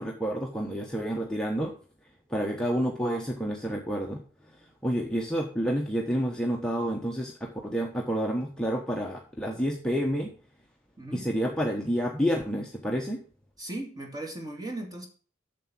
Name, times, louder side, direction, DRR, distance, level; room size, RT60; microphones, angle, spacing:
voice 1, 0.0-1.7 2.3-4.2 4.8-10.3 11.1-13.2, equal, 5° left, -1 dB, 1.1 m, -29 dB
voice 2, 11.0-11.3 13.6-15.1, right 1 dB, 20° right, 1 dB, 2.4 m, -37 dB
7.7 x 6.9 x 6.1 m, 0.41 s
head